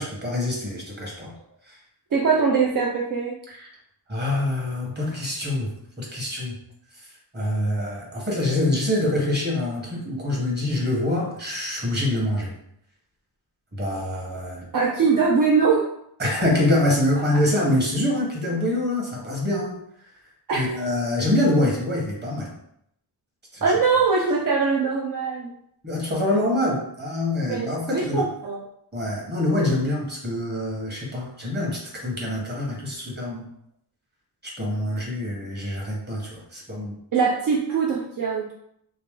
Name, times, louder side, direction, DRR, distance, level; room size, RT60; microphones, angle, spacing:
voice 1, 0.0-1.3 1.7-1.8 3.5-3.7 4.1-5.7 6.0-6.6 7.0-7.1 7.3-12.5 13.7-14.7 16.2-19.7 20.5-22.5 23.5-23.6 25.8-28.2 28.9-33.5 34.4-36.9, left 1 dB, 25° right, -3 dB, 1.3 m, -25 dB
voice 2, 2.1-3.3 14.7-15.8 20.5-20.6 23.6-25.5 27.5-28.6 34.6-34.7 37.1-38.5, right 5 dB, 55° right, -3 dB, 0.6 m, -22 dB
3.1 x 2.9 x 3.6 m, 0.73 s
wide cardioid pair, 115°, 41 cm